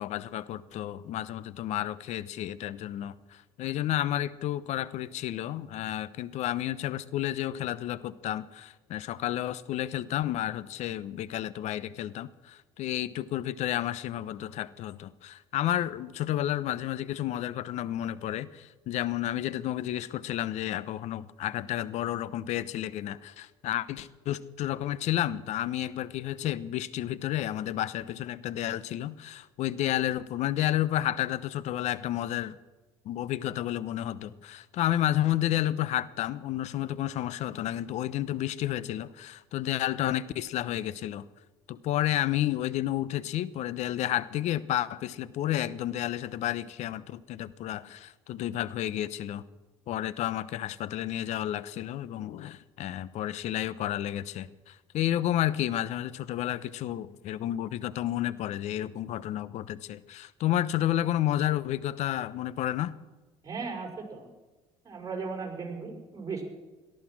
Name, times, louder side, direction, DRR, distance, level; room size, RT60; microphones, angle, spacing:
voice 1, 0.0-32.5 33.0-41.3 41.7-49.4 49.9-62.9, left 13 dB, 60° left, 17 dB, 0.8 m, -31 dB
voice 2, 63.4-64.3 64.8-66.4, right 4 dB, 25° right, 0 dB, 5.5 m, -36 dB
18.5 x 13.0 x 6.1 m, 1.2 s
hypercardioid pair, 75°, 13 cm